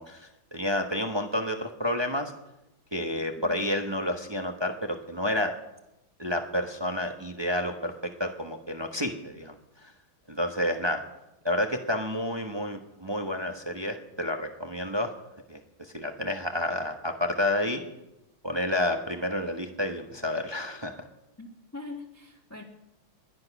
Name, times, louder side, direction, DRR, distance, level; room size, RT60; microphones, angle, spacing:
voice 1, 0.0-2.3 2.9-5.5 6.2-9.9 10.3-11.0 11.4-15.1 15.5-17.8 18.4-21.1, left 1 dB, 20° right, 4 dB, 0.6 m, -30 dB
voice 2, 3.2-3.6 21.4-22.6, left 3 dB, 10° left, -2 dB, 1.4 m, -43 dB
21.0 x 10.5 x 6.0 m, 0.93 s
omnidirectional pair, 2.3 m